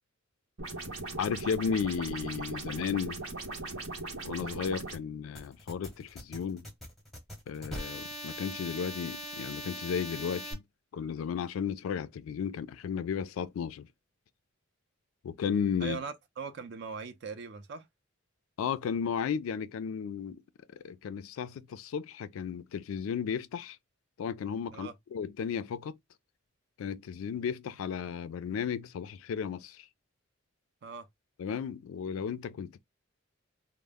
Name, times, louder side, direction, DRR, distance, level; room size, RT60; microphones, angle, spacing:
sound 1, 0.6-5.0, right 2 dB, 90° right, 1.0 m, -39 dB
voice 1, 1.2-3.2 4.2-6.6 7.5-10.6 10.9-13.9 15.2-16.0 18.6-20.4 20.7-23.8 24.2-26.0 26.8-29.9 31.4-32.8, left 7 dB, 75° left, 0.3 m, -34 dB
sound 2, 5.4-10.5, equal, ahead, 0.7 m, -41 dB
voice 2, 15.8-17.9 24.7-24.9 30.8-31.1, right 5 dB, 55° right, 0.4 m, -40 dB
2.0 x 2.0 x 3.3 m
head